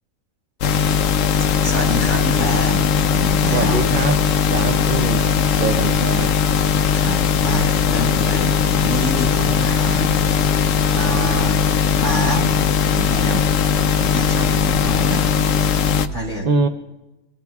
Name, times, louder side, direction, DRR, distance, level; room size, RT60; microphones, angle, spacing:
sound 1, 0.6-16.1, left 7 dB, 65° left, 0.9 m, -18 dB
voice 1, 1.1-3.8 5.7-5.8 6.9-11.7 11.9-12.5 12.9-13.5 13.9-15.3 16.1-16.5, right 1 dB, 30° right, -3 dB, 4.2 m, -27 dB
voice 2, 3.5-4.2 4.5-6.3 16.4-16.7, right 4 dB, 55° right, 6 dB, 0.5 m, -23 dB
25.0 x 16.5 x 2.3 m, 1.0 s
omnidirectional pair, 1.5 m